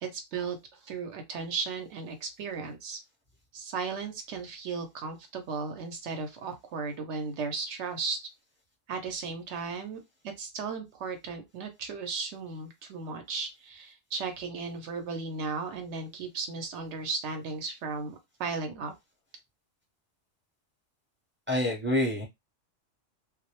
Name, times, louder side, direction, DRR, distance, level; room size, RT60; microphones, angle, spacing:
voice 1, 0.0-3.0 3.5-8.2 8.9-10.0 10.2-18.9, right 4 dB, 75° right, 6 dB, 0.8 m, -35 dB
voice 2, 21.5-22.3, left 1 dB, 10° right, -3 dB, 0.6 m, -27 dB
2.2 x 2.0 x 2.9 m, 0.20 s
omnidirectional pair, 1.2 m